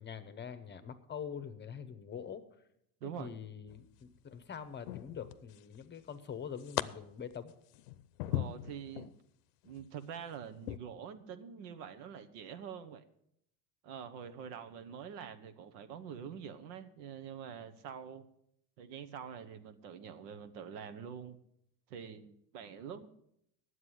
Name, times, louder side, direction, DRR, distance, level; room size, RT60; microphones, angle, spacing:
voice 1, 0.0-2.4 3.0-7.5, left 7 dB, 25° left, 11 dB, 0.8 m, -44 dB
voice 2, 3.0-3.3 8.3-9.1 9.6-13.1 13.8-18.2 18.8-21.4 21.9-23.1, right 7 dB, 75° right, 10 dB, 1.1 m, -45 dB
sound 1, 3.7-4.2 4.9-5.8 6.1-6.8 7.3-9.1 9.6-9.9 10.6-10.8, left 15 dB, 75° left, 0.7 m, -39 dB
9.6 x 7.9 x 7.8 m, 0.75 s
supercardioid pair, 110°, 48 cm